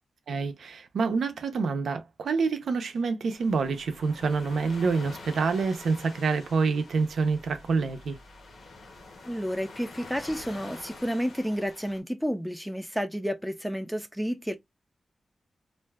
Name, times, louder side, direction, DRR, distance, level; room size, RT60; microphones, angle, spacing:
voice 1, 0.3-8.2, right 4 dB, 90° right, 0.5 m, -27 dB
sound 1, 3.3-12.0, left 3 dB, 65° left, 0.9 m, -47 dB
voice 2, 9.2-14.5, equal, ahead, 0.4 m, -31 dB
2.5 x 2.2 x 3.3 m
wide cardioid pair, 180°, 0 cm